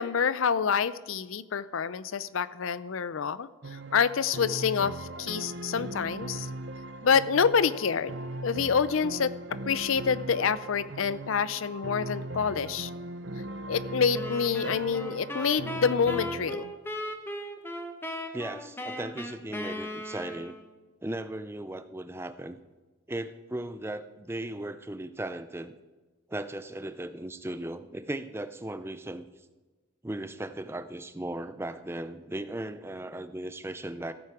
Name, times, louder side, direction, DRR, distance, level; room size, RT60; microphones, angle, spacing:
voice 1, 0.0-6.5 7.0-12.9 13.7-16.7, left 6 dB, 80° left, 16 dB, 0.5 m, -27 dB
sound 1, 3.6-16.6, right 2 dB, 55° right, 0.6 m, -39 dB
sound 2, 14.1-20.7, equal, 10° left, 0.9 m, -38 dB
voice 2, 18.3-20.6 21.0-22.6 23.1-25.7 26.3-29.3 30.0-34.1, right 1 dB, 10° right, 11 dB, 0.5 m, -37 dB
15.0 x 9.0 x 4.8 m, 1.2 s
head